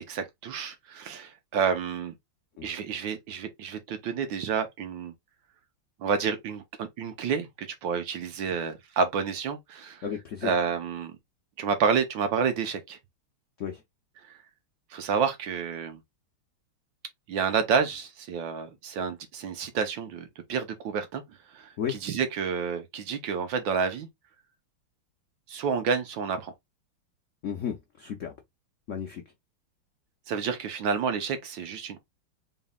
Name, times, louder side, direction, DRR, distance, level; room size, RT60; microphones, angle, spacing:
voice 1, 0.1-2.1 2.6-5.1 6.0-10.0 10.4-11.2 11.6-13.0 14.3-14.4 14.9-16.0 17.3-24.1 25.5-26.5 30.3-32.0, right 6 dB, 70° right, 1.5 m, -29 dB
voice 2, 10.0-10.5 13.6-13.8 21.8-22.0 27.4-28.3 28.9-29.2, left 8 dB, 75° left, 0.7 m, -33 dB
4.0 x 3.8 x 2.3 m
omnidirectional pair, 2.3 m